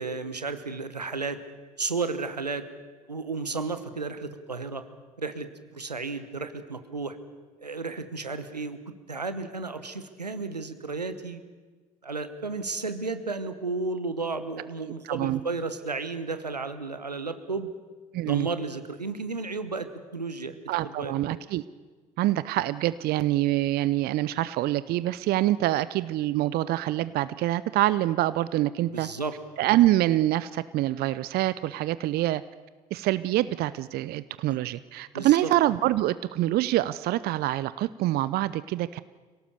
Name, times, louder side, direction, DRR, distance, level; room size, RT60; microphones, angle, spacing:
voice 1, 0.0-1.4 1.8-2.6 3.1-4.8 5.2-7.2 7.6-8.8 9.1-11.4 12.0-17.7 18.2-19.9 20.1-20.6 20.8-21.1 28.8-29.3 34.5-34.6 35.1-35.5, right 3 dB, 90° right, 10 dB, 1.1 m, -33 dB
voice 2, 15.1-15.4 18.1-18.5 20.7-21.6 22.2-29.1 29.6-32.4 32.9-39.0, right 15 dB, 50° right, 17 dB, 0.6 m, -25 dB
25.0 x 17.5 x 6.8 m, 1.4 s
figure-of-eight pair, 55°, 20 cm